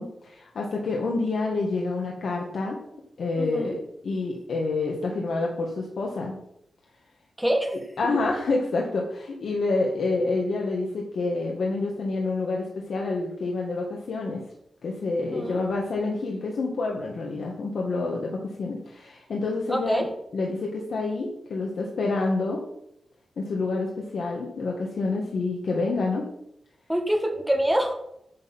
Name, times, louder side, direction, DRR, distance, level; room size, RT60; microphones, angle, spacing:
voice 1, 0.0-2.8 3.2-6.4 8.0-14.4 14.8-18.3 18.6-20.1 20.3-22.6 23.4-26.3, left 3 dB, 65° left, -1 dB, 2.0 m, -28 dB
voice 2, 3.3-3.8 7.4-7.8 15.3-15.6 19.7-20.1 26.9-27.9, equal, ahead, 3 dB, 1.9 m, -25 dB
9.7 x 6.7 x 7.3 m, 0.77 s
wide cardioid pair, 150°, 0 cm